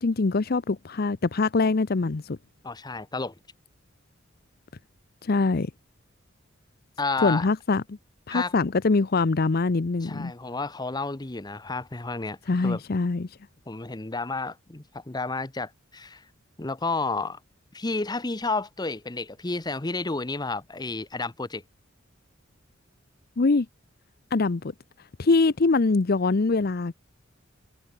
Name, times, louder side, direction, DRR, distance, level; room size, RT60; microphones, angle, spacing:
voice 1, 0.0-2.4 5.2-5.7 7.2-8.0 8.3-10.3 12.5-13.3 23.4-23.7 24.3-24.7 25.2-26.9, left 3 dB, 50° left, 0.6 m, -23 dB
voice 2, 2.6-3.3 7.0-7.5 8.3-8.5 10.0-12.4 12.6-12.8 13.7-16.2 16.6-17.4 17.7-21.6, left 3 dB, 20° left, 0.9 m, -31 dB
head